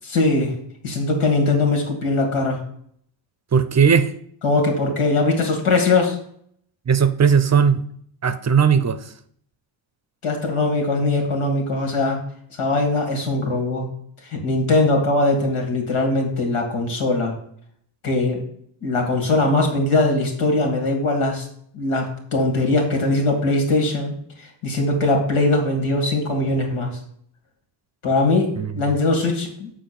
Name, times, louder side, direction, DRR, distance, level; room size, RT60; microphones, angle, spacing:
voice 1, 0.1-0.5 0.8-2.6 4.4-6.2 10.2-12.2 12.6-13.9 14.3-17.3 18.0-18.4 18.8-21.5 21.7-24.1 24.4-26.9 28.0-29.7, left 2 dB, 85° left, 3 dB, 2.5 m, -21 dB
voice 2, 3.5-4.1 6.9-7.8 8.2-9.0 28.6-28.7, right 6 dB, 35° right, 11 dB, 0.6 m, -17 dB
7.1 x 4.6 x 6.0 m, 0.64 s
cardioid pair, 105°, 50 cm